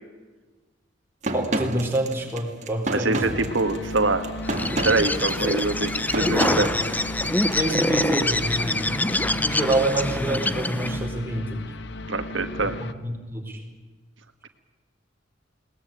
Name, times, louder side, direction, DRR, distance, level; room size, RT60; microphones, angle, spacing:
sound 1, 1.2-7.6, right 2 dB, 40° right, 2.1 m, -30 dB
voice 1, 1.3-3.2 6.1-6.6 7.5-8.9 9.4-11.7 12.6-12.7 13.0-13.6, right 1 dB, 10° right, 0 dB, 4.2 m, -27 dB
voice 2, 2.9-4.3 4.6-6.7 12.1-12.8, right 3 dB, 80° right, 7 dB, 1.5 m, -25 dB
sound 2, 3.3-12.9, left 2 dB, 65° left, 1.0 m, -36 dB
Bird, 4.4-11.1, left 1 dB, 10° left, 0.8 m, -25 dB
21.0 x 19.5 x 9.0 m, 1.3 s
head